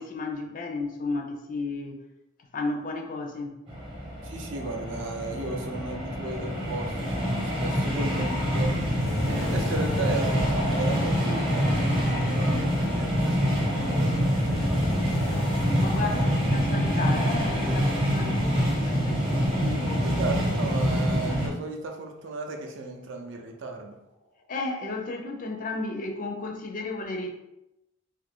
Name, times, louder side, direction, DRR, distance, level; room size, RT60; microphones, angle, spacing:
voice 1, 0.0-2.0 2.5-3.6 15.8-20.0 24.5-27.3, left 3 dB, 40° left, 3 dB, 0.4 m, -33 dB
sound 1, 3.7-21.5, equal, 25° right, 0.7 m, -26 dB
voice 2, 4.2-8.8 9.2-15.5 16.1-16.3 20.0-24.0, right 3 dB, 65° right, 2 dB, 0.5 m, -35 dB
sound 2, 9.0-20.4 20.8-21.0 21.6-21.7, left 1 dB, 80° left, 0.6 m, -38 dB
2.7 x 2.4 x 3.5 m, 0.89 s
head